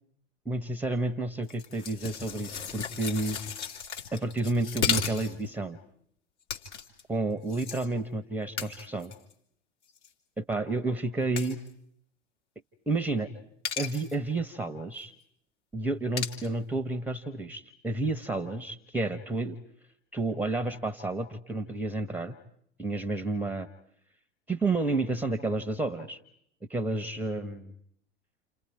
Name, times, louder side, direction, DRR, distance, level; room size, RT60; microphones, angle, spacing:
voice 1, 0.4-3.4 4.1-5.8 7.1-9.1 10.4-11.6 12.9-13.3 13.8-15.1 15.7-19.6 20.1-22.3 22.8-23.7 24.5-26.2 26.7-27.7, right 2 dB, 5° right, 11 dB, 0.9 m, -30 dB
sound 1, 1.5-5.5 6.5-7.0 7.5-7.9 8.6-9.3 9.9-10.1 11.4-11.7 13.6-14.1 16.2-16.5, left 7 dB, 65° left, 3.1 m, -34 dB
29.5 x 28.0 x 4.8 m, 0.70 s
figure-of-eight pair, 85°, 36 cm